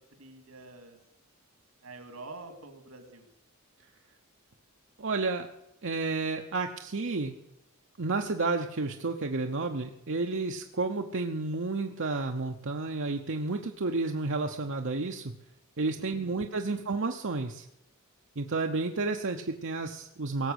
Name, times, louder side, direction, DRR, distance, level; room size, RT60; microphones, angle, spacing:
voice 1, 0.2-1.0 1.8-3.3 16.0-16.8, right 2 dB, 85° right, 8 dB, 2.4 m, -47 dB
voice 2, 5.0-5.5 5.8-7.4 8.0-15.3 15.8-17.7 18.4-20.5, right 3 dB, 60° right, 3 dB, 0.9 m, -31 dB
18.0 x 7.2 x 8.1 m, 0.85 s
head